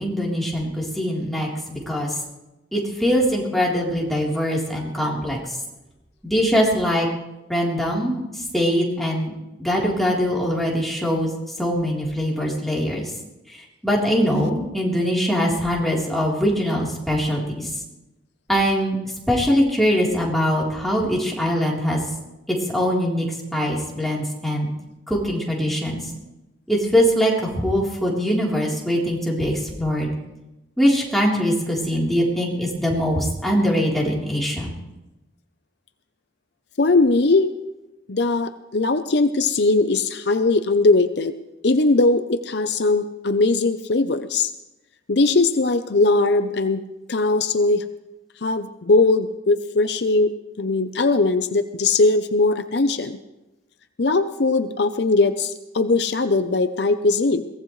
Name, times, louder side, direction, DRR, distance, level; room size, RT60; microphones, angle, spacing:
voice 1, 0.0-2.1 2.7-5.4 6.2-7.1 7.5-9.3 9.6-11.3 11.6-13.1 13.8-17.7 18.5-19.0 19.3-22.0 22.5-23.3 23.5-24.7 25.1-26.0 26.7-30.1 30.8-34.7, equal, ahead, -4 dB, 3.8 m, -22 dB
voice 2, 36.8-37.5 38.1-41.3 41.6-44.5 45.1-46.8 47.1-47.8 48.4-50.3 50.6-53.2 54.0-57.4, left 3 dB, 65° left, 10 dB, 0.7 m, -20 dB
22.5 x 17.5 x 3.3 m, 0.98 s
head